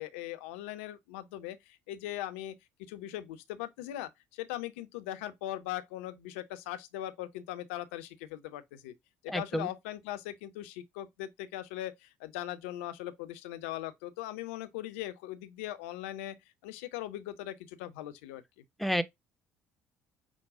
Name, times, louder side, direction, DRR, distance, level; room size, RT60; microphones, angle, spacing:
voice 1, 0.0-8.9 9.2-16.4 16.6-18.6, left 13 dB, 75° left, 0.6 m, -40 dB
voice 2, 9.3-9.7 18.8-19.0, equal, ahead, 0.7 m, -29 dB
6.1 x 2.2 x 3.5 m
hypercardioid pair, 55°, 7 cm